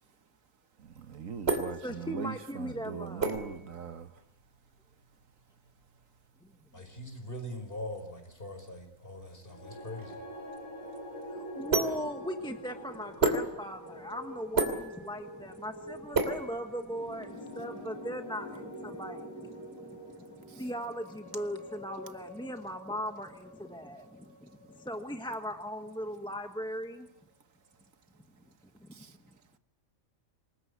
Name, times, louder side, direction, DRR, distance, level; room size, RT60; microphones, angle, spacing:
sound 1, 0.8-17.2, right 3 dB, 50° right, 3.2 m, -35 dB
voice 1, 0.8-4.1 20.5-20.6 28.9-29.1, right 7 dB, 80° right, 1.6 m, -41 dB
voice 2, 1.8-3.4 11.3-20.0 20.3-27.1 28.8-29.0, equal, 5° left, 1.3 m, -39 dB
voice 3, 6.7-10.1, left 1 dB, 45° left, 5.1 m, -42 dB
sound 2, 9.4-25.7, equal, 80° left, 6.9 m, -46 dB
27.0 x 20.5 x 8.1 m
omnidirectional pair, 1.4 m